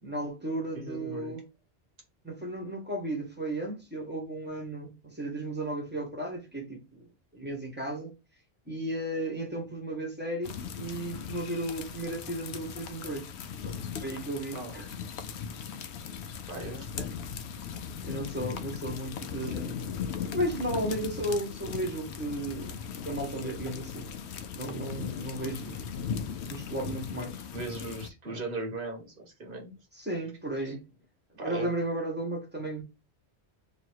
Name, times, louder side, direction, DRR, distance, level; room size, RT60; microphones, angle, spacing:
voice 1, 0.0-1.4 2.2-7.1 7.3-8.1 8.7-13.3 13.6-14.9 16.9-17.1 18.0-19.9 20.3-24.1 24.5-26.0 26.5-27.4 28.3-28.4 29.9-30.8 31.4-32.8, right 1 dB, 10° right, 1.2 m, -34 dB
voice 2, 0.7-1.3 14.5-14.7 16.5-16.9 27.5-29.7 30.6-30.7 31.4-31.7, right 2 dB, 55° right, 1.4 m, -38 dB
sound 1, 10.4-28.1, left 7 dB, 80° left, 0.8 m, -38 dB
3.0 x 2.8 x 4.5 m
omnidirectional pair, 1.1 m